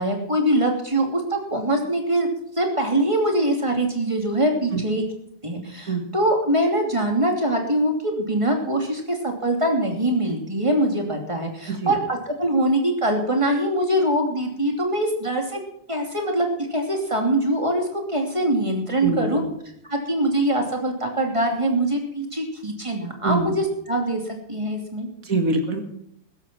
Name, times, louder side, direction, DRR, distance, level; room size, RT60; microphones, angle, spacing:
voice 1, 0.0-2.3 2.6-5.0 5.4-15.6 15.9-19.4 19.9-25.1, right 1 dB, 20° right, 2 dB, 2.8 m, -23 dB
voice 2, 19.0-19.5 23.2-23.5 25.2-25.8, right 3 dB, 55° right, 5 dB, 2.5 m, -24 dB
16.0 x 13.5 x 4.4 m, 0.73 s
omnidirectional pair, 1.7 m